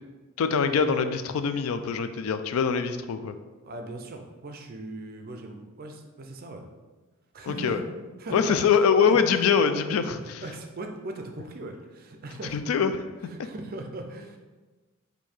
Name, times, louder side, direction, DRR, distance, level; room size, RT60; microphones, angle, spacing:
voice 1, 0.4-3.3 7.5-7.8 8.3-10.4 12.5-13.0, left 6 dB, 75° left, 9 dB, 0.3 m, -24 dB
voice 2, 3.6-6.6 7.3-8.6 9.1-9.4 10.2-12.6 13.3-14.4, right 2 dB, 40° right, 4 dB, 0.4 m, -39 dB
4.5 x 2.7 x 4.3 m, 1.3 s
head